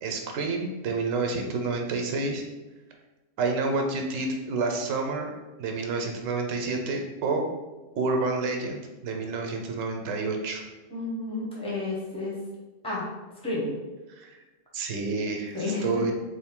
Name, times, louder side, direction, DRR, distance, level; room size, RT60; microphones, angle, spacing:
voice 1, 0.0-2.4 3.4-5.3 5.6-7.5 8.0-10.6 14.2-14.4 14.7-16.1, right 3 dB, 85° right, 3 dB, 0.9 m, -29 dB
voice 2, 10.9-12.4 12.8-13.0 13.4-13.7 15.5-16.0, left 2 dB, 5° left, -6 dB, 0.8 m, -31 dB
3.4 x 2.5 x 3.6 m, 1.2 s
omnidirectional pair, 1.3 m